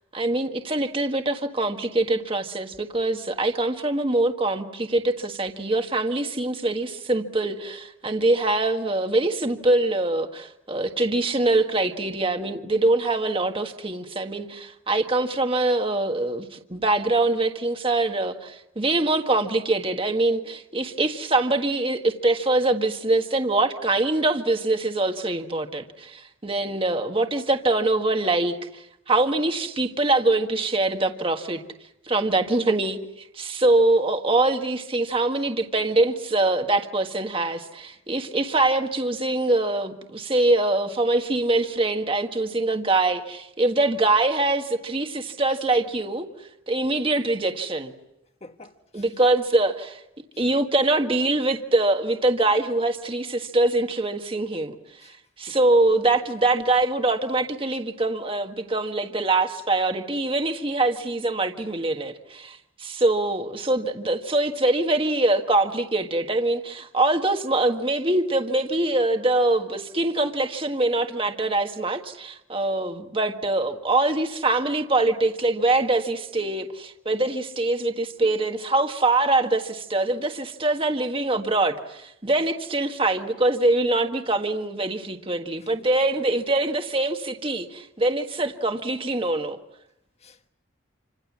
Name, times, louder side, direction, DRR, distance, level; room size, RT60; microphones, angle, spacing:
voice 1, 0.1-31.6 32.1-33.0 33.4-46.3 46.7-47.9 48.9-50.0 50.4-54.8 55.4-89.6, right 2 dB, 25° right, 1.5 m, -23 dB
voice 2, 48.4-49.1 50.3-50.4 55.0-55.2 55.5-55.6 85.6-85.9 90.2-90.5, left 2 dB, 30° left, 1.5 m, -49 dB
28.5 x 26.0 x 7.4 m
head